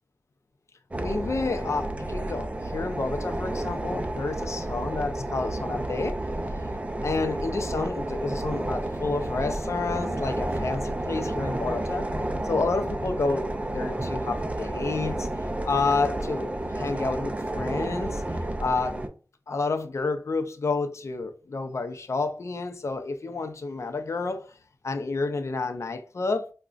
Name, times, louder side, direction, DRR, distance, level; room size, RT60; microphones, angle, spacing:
sound 1, 0.9-19.1, right 1 dB, 25° right, 0.4 m, -31 dB
voice 1, 1.0-6.2 7.0-12.1 12.4-15.3 15.7-18.2 18.6-19.0 19.5-24.6 24.8-26.5, left 3 dB, 60° left, 0.5 m, -30 dB
4.9 x 2.2 x 2.4 m
wide cardioid pair, 75°, 6 cm